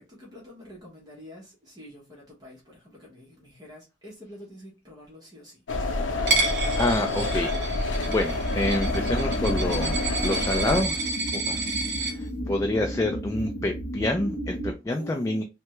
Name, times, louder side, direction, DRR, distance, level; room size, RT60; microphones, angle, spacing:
voice 1, 0.0-5.6 6.1-6.4 11.6-12.0 14.9-15.4, left 1 dB, 20° right, 1.0 m, -46 dB
sound 1, 5.7-10.8, left 2 dB, 85° left, 0.6 m, -28 dB
voice 2, 6.3-11.6 12.0-15.4, left 1 dB, 15° left, 0.4 m, -28 dB
Coin (dropping), 6.3-12.1, right 3 dB, 65° right, 0.8 m, -30 dB
sound 2, 8.4-14.7, equal, 55° left, 0.9 m, -33 dB
3.4 x 2.2 x 2.9 m
head